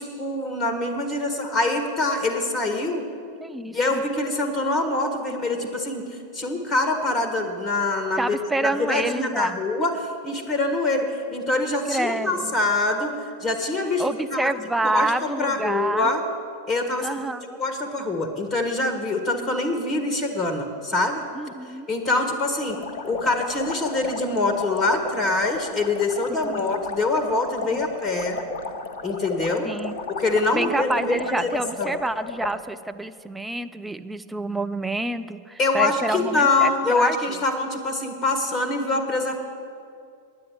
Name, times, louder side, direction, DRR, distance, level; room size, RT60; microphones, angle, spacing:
voice 1, 0.0-3.0 3.7-13.1 13.4-14.5 14.8-16.2 16.7-17.2 17.6-21.3 21.9-22.8 23.0-28.4 29.0-29.7 30.2-31.5 31.8-31.9 35.6-39.4, left 2 dB, 20° left, 6 dB, 1.6 m, -24 dB
voice 2, 3.4-4.0 8.2-9.6 11.9-12.5 14.0-16.1 17.0-17.6 21.3-21.9 26.3-26.7 27.6-27.9 29.6-30.0 30.5-37.2, right 2 dB, 5° right, 9 dB, 0.4 m, -28 dB
sound 1, 22.6-32.6, left 4 dB, 50° left, 1.1 m, -34 dB
9.6 x 9.1 x 9.2 m, 2.4 s
figure-of-eight pair, 90°, 0 cm